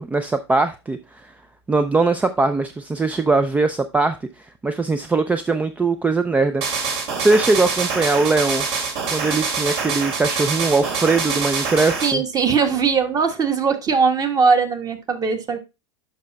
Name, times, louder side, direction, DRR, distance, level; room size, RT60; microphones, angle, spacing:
voice 1, 0.0-1.3 1.7-4.2 4.6-6.6 7.2-8.7 9.1-12.2, right 3 dB, 10° right, 0.4 m, -20 dB
sound 1, 6.6-12.1, right 5 dB, 60° right, 2.6 m, -25 dB
voice 2, 12.0-15.6, right 5 dB, 25° right, 1.3 m, -20 dB
11.5 x 5.6 x 2.2 m
figure-of-eight pair, 90°, 14 cm